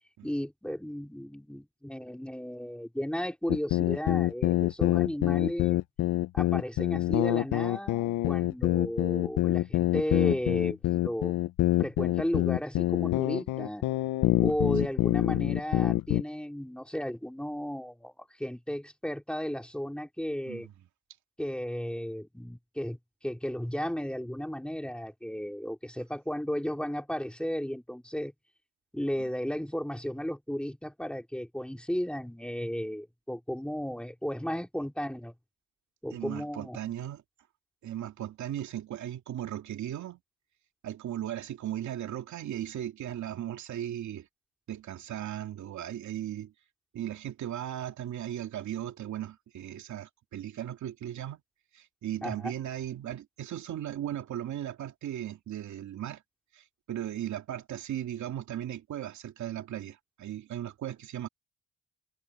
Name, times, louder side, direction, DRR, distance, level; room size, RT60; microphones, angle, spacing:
voice 1, 0.2-5.8 6.3-11.3 11.8-13.8 14.4-20.7 21.4-28.3 28.9-35.3 36.0-36.8 52.2-52.5, equal, 5° left, 3.6 m, -34 dB
sound 1, 3.5-16.2, left 16 dB, 85° left, 0.8 m, -26 dB
voice 2, 36.1-37.2 37.8-40.2 40.8-44.3 44.7-46.5 46.9-51.4 51.7-56.2 56.5-61.3, right 11 dB, 70° right, 2.5 m, -37 dB
cardioid pair, 90°, 30 cm